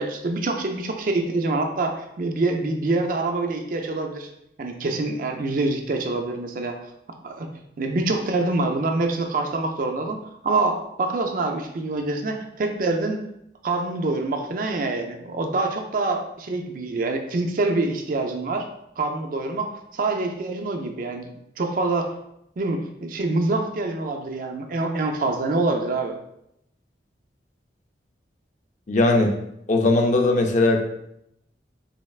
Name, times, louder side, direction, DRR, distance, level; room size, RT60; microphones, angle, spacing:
voice 1, 0.0-4.3 4.6-6.8 7.2-7.5 7.8-10.2 10.4-13.2 13.6-18.7 19.0-21.3 21.6-22.1 22.6-26.2, right 2 dB, 50° right, 4 dB, 0.4 m, -25 dB
voice 2, 28.9-29.3 29.7-30.9, left 2 dB, 45° left, 3 dB, 0.4 m, -19 dB
4.0 x 3.2 x 2.3 m, 0.79 s
head